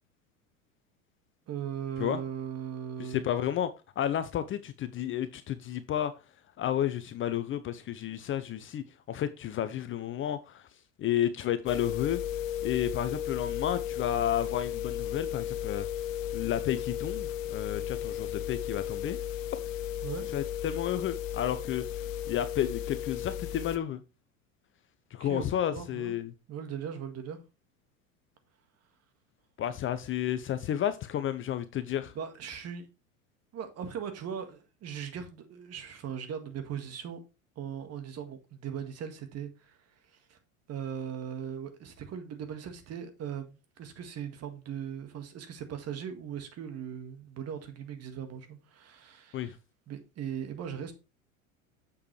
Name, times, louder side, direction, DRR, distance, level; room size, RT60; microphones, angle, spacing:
voice 1, 1.5-3.3 20.0-20.3 25.2-25.4 25.7-26.2 26.5-27.4 32.2-32.9 33.5-37.2 37.6-39.8 40.1-40.4 40.7-49.5 49.9-50.9, right 8 dB, 35° right, 1.8 m, -39 dB
voice 2, 3.0-3.7 4.0-6.1 6.6-10.6 11.0-12.2 12.6-15.9 16.3-19.2 20.3-21.8 22.3-24.0 25.1-26.3 29.6-32.1 49.3-49.6, left 11 dB, 30° left, 0.7 m, -31 dB
sound 1, 11.7-23.8, left 10 dB, 65° left, 0.8 m, -35 dB
7.1 x 6.7 x 3.2 m
hypercardioid pair, 85°, 41 cm